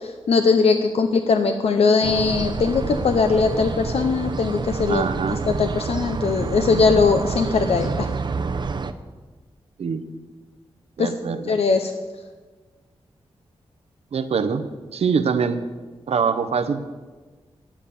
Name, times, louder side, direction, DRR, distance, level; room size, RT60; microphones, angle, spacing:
voice 1, 0.3-5.0 5.6-8.1 11.0-11.1 11.5-11.9, left 4 dB, 75° left, 7 dB, 0.7 m, -20 dB
sound 1, 2.0-8.9, right 4 dB, 45° right, 0.6 m, -28 dB
voice 2, 4.9-5.5 9.8-10.0 11.0-11.5 14.1-14.6 14.9-15.6 16.1-16.8, right 6 dB, 80° right, 9 dB, 0.8 m, -23 dB
10.5 x 8.7 x 6.9 m, 1.4 s
wide cardioid pair, 105°, 10 cm